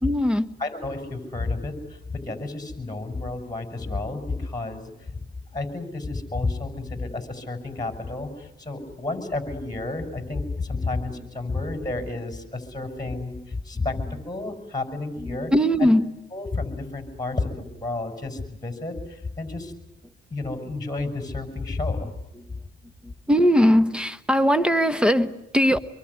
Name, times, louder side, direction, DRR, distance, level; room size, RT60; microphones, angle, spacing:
voice 1, 0.0-0.5 15.2-16.1 23.0-25.8, equal, 5° right, 1.4 m, -20 dB
voice 2, 0.6-5.2 5.5-15.5 15.8-15.9 16.3-19.7 20.3-22.1, left 3 dB, 20° left, 6.3 m, -31 dB
26.5 x 23.0 x 9.7 m
cardioid pair, 90°, 20 cm